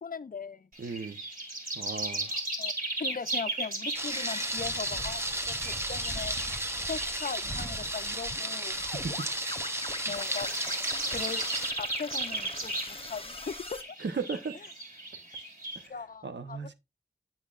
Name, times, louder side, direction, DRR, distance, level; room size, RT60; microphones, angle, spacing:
voice 1, 0.0-0.7 2.6-2.7 3.0-5.2 5.5-6.4 6.9-8.8 10.1-10.5 11.1-11.4 11.8-13.8 15.9-16.7, left 5 dB, 55° left, 0.4 m, -39 dB
sound 1, 0.7-15.9, right 2 dB, 55° right, 2.6 m, -37 dB
voice 2, 0.8-1.2 1.7-2.4 9.0-9.3 14.0-14.5 15.8-15.9 16.2-16.7, right 5 dB, 85° right, 0.8 m, -36 dB
Thunder, 3.9-11.7, right 1 dB, 15° right, 0.9 m, -33 dB
sound 2, 4.1-4.5 8.2-13.8, left 2 dB, 30° left, 1.0 m, -42 dB
8.2 x 7.2 x 2.4 m
wide cardioid pair, 55°, 18 cm